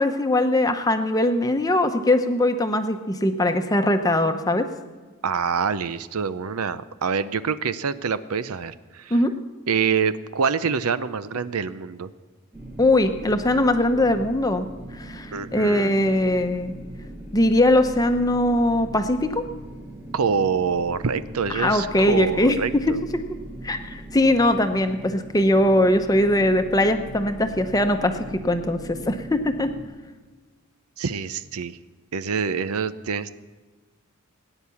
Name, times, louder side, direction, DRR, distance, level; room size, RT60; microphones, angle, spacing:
voice 1, 0.0-4.7 9.1-9.3 12.8-14.7 14.9-16.8 17.3-19.4 21.5-22.6 22.9-23.2 23.6-29.7, left 1 dB, 15° left, 7 dB, 0.9 m, -21 dB
voice 2, 5.2-9.2 9.7-12.1 15.3-15.9 20.1-23.0 31.0-31.8 32.1-33.3, right 6 dB, 80° right, 14 dB, 0.6 m, -26 dB
sound 1, 12.5-29.8, right 1 dB, 10° right, 1.4 m, -40 dB
18.0 x 9.8 x 7.0 m, 1.3 s
head